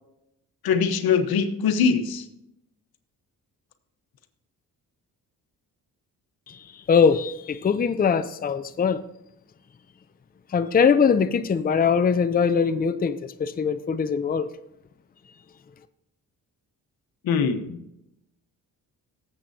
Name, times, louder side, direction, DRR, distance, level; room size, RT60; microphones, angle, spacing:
voice 1, 0.6-2.3 17.2-17.8, left 6 dB, 85° left, 1.1 m, -22 dB
voice 2, 6.9-9.0 10.5-14.5, left 6 dB, 25° left, 0.5 m, -22 dB
18.5 x 7.7 x 2.8 m
cardioid pair, 100°, 35 cm